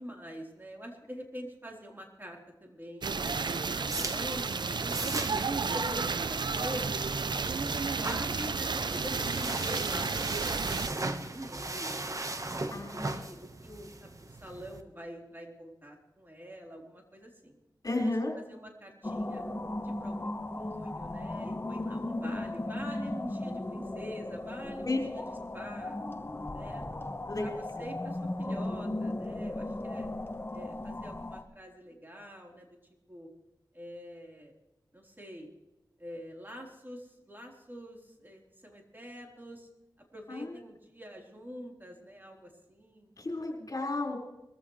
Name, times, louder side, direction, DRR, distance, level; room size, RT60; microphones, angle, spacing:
voice 1, 0.0-3.0 3.4-5.4 5.7-12.3 12.7-17.6 17.9-19.4 19.8-20.1 20.5-26.0 26.5-26.9 27.4-30.1 30.5-32.8 33.1-33.3 33.7-34.5 34.9-35.5 36.0-39.7 40.1-43.1, equal, 25° right, 0 dB, 3.9 m, -45 dB
sound 1, 3.0-10.9, right 4 dB, 65° right, 0.6 m, -32 dB
sound 2, 3.5-14.8, right 2 dB, 45° right, 1.3 m, -38 dB
voice 2, 12.7-13.2 17.8-18.3 24.8-25.0 27.3-27.5 40.3-40.6 43.2-44.2, left 2 dB, 50° left, -1 dB, 4.8 m, -32 dB
sound 3, 19.0-31.4, left 1 dB, 30° left, 1.2 m, -36 dB
22.5 x 14.5 x 3.3 m, 0.98 s
cardioid pair, 45°, 8 cm